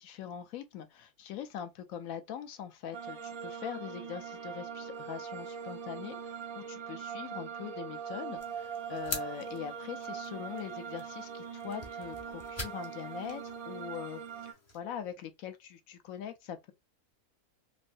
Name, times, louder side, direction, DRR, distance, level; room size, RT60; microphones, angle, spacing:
voice 1, 0.0-16.7, left 9 dB, 70° left, 1.0 m, -42 dB
sound 1, 2.9-14.5, right 7 dB, 75° right, 1.1 m, -42 dB
sound 2, 8.4-14.8, left 2 dB, 35° left, 0.6 m, -46 dB
3.1 x 2.6 x 2.5 m
omnidirectional pair, 1.6 m